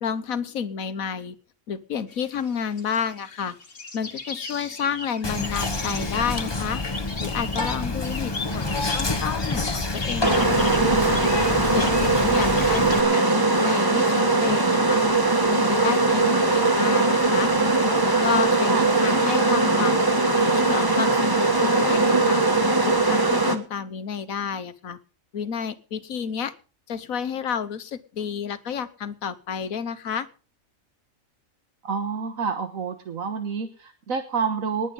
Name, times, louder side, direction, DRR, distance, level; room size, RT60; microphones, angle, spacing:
voice 1, 0.0-1.3 1.7-3.6 3.9-6.8 7.2-11.3 11.7-15.0 15.5-17.5 18.0-20.0 20.4-22.4 22.8-25.0 25.3-26.5 26.9-30.3, left 7 dB, 80° left, 13 dB, 1.5 m, -30 dB
sound 1, 2.1-13.3, left 3 dB, 45° left, 1.8 m, -38 dB
Whispering, 5.2-13.0, left 2 dB, 20° left, 1.0 m, -28 dB
voice 2, 8.0-8.8 12.3-12.9 16.2-16.4 18.7-18.9 31.8-34.9, right 5 dB, 75° right, 8 dB, 1.7 m, -30 dB
sound 2, 10.2-23.6, right 3 dB, 15° right, 1.4 m, -20 dB
19.5 x 9.1 x 5.4 m, 0.37 s
omnidirectional pair, 1.4 m